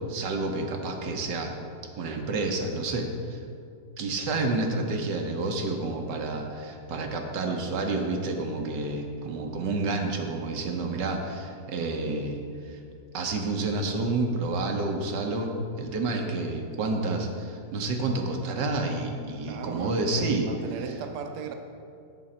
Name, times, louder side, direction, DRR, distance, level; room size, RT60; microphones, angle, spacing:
voice 1, 0.0-1.5 2.0-3.4 4.0-12.8 13.1-20.5, right 2 dB, 85° right, 3 dB, 1.4 m, -29 dB
voice 2, 19.4-21.5, right 6 dB, 70° right, 5 dB, 1.1 m, -37 dB
7.6 x 6.7 x 4.3 m, 2.4 s
omnidirectional pair, 1.9 m